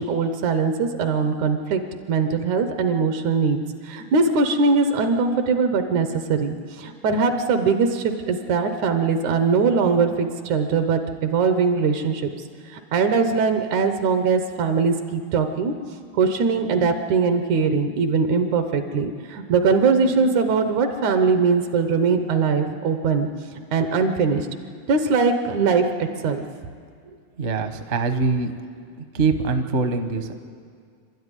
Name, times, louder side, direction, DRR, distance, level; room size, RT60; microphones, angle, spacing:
voice 1, 0.0-1.8 2.1-3.6 3.8-12.3 12.7-15.7 16.2-23.3 23.7-24.5 24.9-26.4, right 5 dB, 80° right, 7 dB, 2.5 m, -21 dB
voice 2, 27.4-28.5 29.1-30.3, right 4 dB, 55° right, 6 dB, 0.7 m, -23 dB
26.5 x 12.5 x 9.9 m, 2.1 s
omnidirectional pair, 3.4 m